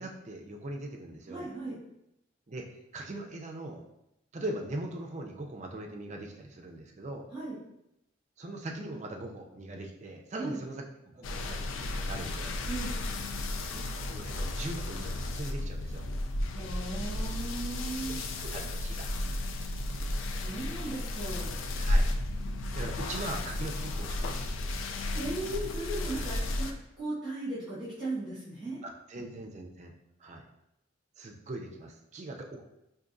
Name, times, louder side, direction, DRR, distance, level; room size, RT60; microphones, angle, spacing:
voice 1, 0.0-1.5 2.5-3.8 4.3-7.3 8.4-12.6 13.7-13.8 14.1-16.1 18.1-19.1 21.8-22.1 22.7-24.5 28.8-29.9 30.2-30.4 31.2-32.6, right 2 dB, 35° right, 2 dB, 0.4 m, -41 dB
voice 2, 1.3-1.8 7.3-7.6 10.4-10.6 12.7-13.0 16.5-18.2 20.3-21.5 25.1-26.7 27.0-28.8, right 2 dB, ahead, -14 dB, 1.4 m, -37 dB
sound 1, 11.2-26.7, left 1 dB, 70° left, 0.4 m, -33 dB
4.8 x 2.6 x 2.5 m, 0.85 s
head